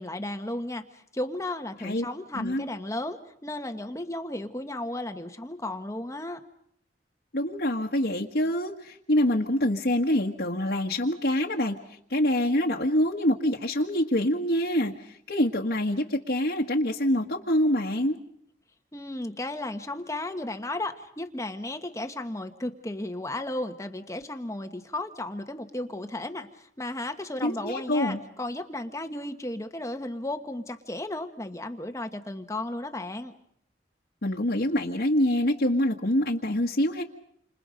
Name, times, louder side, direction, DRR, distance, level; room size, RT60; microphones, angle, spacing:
voice 1, 0.0-6.4 18.9-33.3, left 1 dB, 20° left, 7 dB, 1.3 m, -34 dB
voice 2, 7.3-11.8 12.1-18.2 27.4-28.2 34.2-37.0, left 1 dB, 65° left, -2 dB, 1.7 m, -25 dB
29.5 x 27.0 x 5.3 m, 0.68 s
head